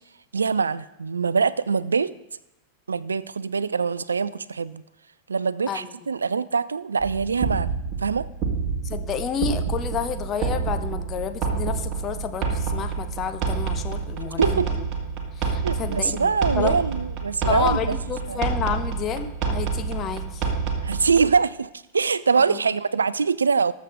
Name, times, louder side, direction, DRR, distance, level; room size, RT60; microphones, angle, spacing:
voice 1, 0.3-2.1 2.9-4.8 5.3-7.7 8.0-8.3 14.4-14.7 15.6-18.0 18.3-18.4 20.8-23.7, right 5 dB, 75° right, 19 dB, 0.4 m, -23 dB
sound 1, 7.0-21.4, right 5 dB, 35° right, 1.8 m, -28 dB
voice 2, 8.8-14.8 15.4-16.8 17.5-20.5, left 7 dB, 30° left, 8 dB, 1.1 m, -30 dB
20.0 x 7.3 x 3.6 m, 0.89 s
figure-of-eight pair, 90°, 0 cm